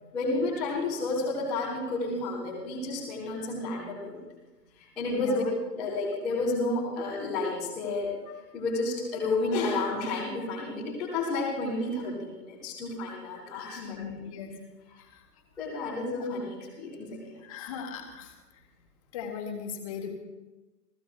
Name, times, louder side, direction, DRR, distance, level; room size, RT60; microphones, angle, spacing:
voice 1, 0.1-4.2 5.0-8.2 8.5-14.0 15.6-17.3, left 2 dB, ahead, -15 dB, 0.8 m, -31 dB
voice 2, 5.1-5.4 13.8-14.5 17.4-18.3 19.1-20.1, left 7 dB, 20° left, 3 dB, 1.5 m, -37 dB
29.5 x 15.0 x 2.2 m, 1.1 s
figure-of-eight pair, 145°, 50 cm